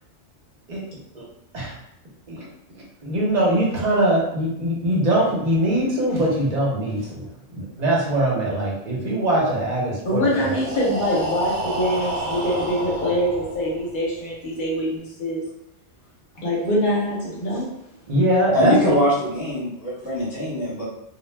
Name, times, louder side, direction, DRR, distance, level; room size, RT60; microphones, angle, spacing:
voice 1, 2.3-10.5 18.1-19.0, right 1 dB, 45° right, -3 dB, 0.7 m, -22 dB
voice 2, 10.1-15.4 16.4-17.7, equal, 50° left, -5 dB, 0.8 m, -24 dB
Breathing, 10.1-14.0, right 1 dB, 70° right, 0.9 m, -30 dB
voice 3, 18.5-20.8, left 1 dB, 20° left, -7 dB, 0.8 m, -22 dB
2.1 x 2.1 x 3.2 m, 0.80 s
omnidirectional pair, 1.3 m